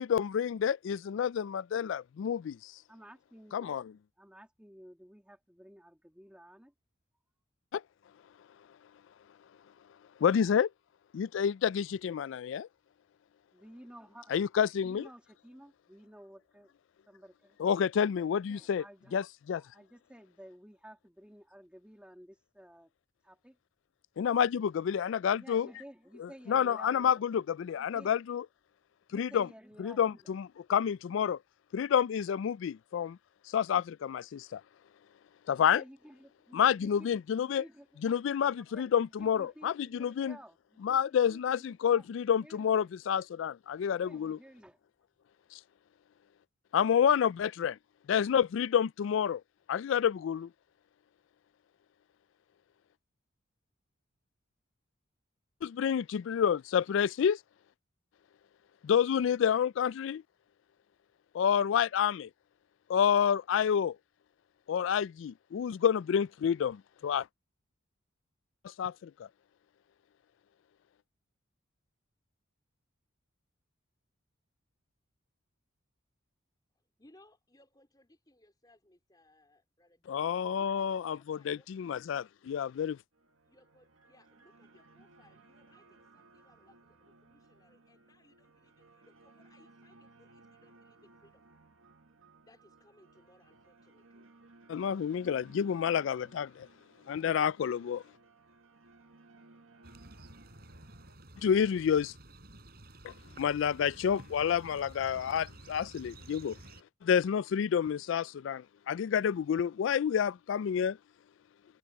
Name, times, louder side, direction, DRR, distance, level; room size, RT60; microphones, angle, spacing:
voice 1, 0.0-2.7 3.5-3.8 7.7-7.8 10.2-10.7 11.1-12.7 14.3-15.1 17.6-18.8 19.1-19.6 24.2-25.7 26.5-28.4 29.1-29.5 29.8-31.4 31.7-33.2 33.5-34.6 35.5-35.8 36.5-37.6 38.0-40.4 40.8-44.4 45.5-45.6 46.7-47.8 48.1-49.4 49.7-50.5 55.6-57.4 58.8-60.2 61.3-62.3 62.9-64.0 64.7-67.3 68.6-69.3 80.1-83.0 94.7-96.7 97.1-98.0 101.4-102.1 103.0-106.6 107.0-111.0, left 8 dB, 70° left, 0.3 m, -29 dB
voice 2, 2.9-3.8 4.2-6.7 13.5-14.4 14.8-16.7 17.1-17.7 18.5-19.2 19.6-22.9 23.2-23.6 25.4-27.2 27.7-28.2 29.1-30.4 35.6-38.1 38.7-42.9 44.0-44.8, equal, 5° right, 1.8 m, -54 dB
voice 3, 77.0-82.0 83.4-91.4 92.4-94.3, left 1 dB, 20° left, 4.2 m, -65 dB
sound 1, 83.1-101.2, right 3 dB, 90° right, 1.7 m, -61 dB
sound 2, 99.8-106.8, right 1 dB, 50° right, 5.7 m, -52 dB
head